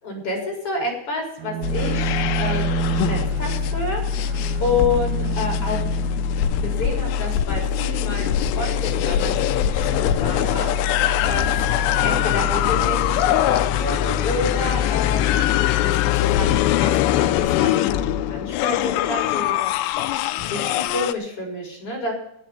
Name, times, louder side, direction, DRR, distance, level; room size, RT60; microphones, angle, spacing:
voice 1, 0.0-4.0 4.6-5.8 6.5-9.3 9.6-11.5 12.0-15.5 15.8-17.8 18.2-19.5 20.3-22.1, left 3 dB, 30° left, -1 dB, 5.0 m, -29 dB
Bowed string instrument, 1.4-7.2, right 11 dB, 70° right, 2.6 m, -30 dB
sound 1, 1.6-21.1, left 10 dB, 80° left, 2.6 m, -22 dB
10.5 x 9.3 x 8.9 m, 0.73 s
omnidirectional pair, 5.2 m